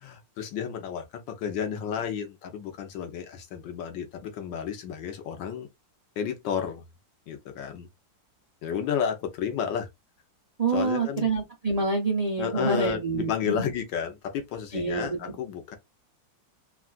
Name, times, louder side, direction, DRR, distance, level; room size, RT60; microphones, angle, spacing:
voice 1, 0.0-5.7 6.2-6.8 7.3-7.9 8.6-9.9 10.7-11.3 12.4-15.8, left 8 dB, 80° left, 1.5 m, -32 dB
voice 2, 10.6-13.7 14.7-15.3, right 3 dB, 50° right, 0.4 m, -27 dB
3.6 x 2.3 x 2.4 m
omnidirectional pair, 2.0 m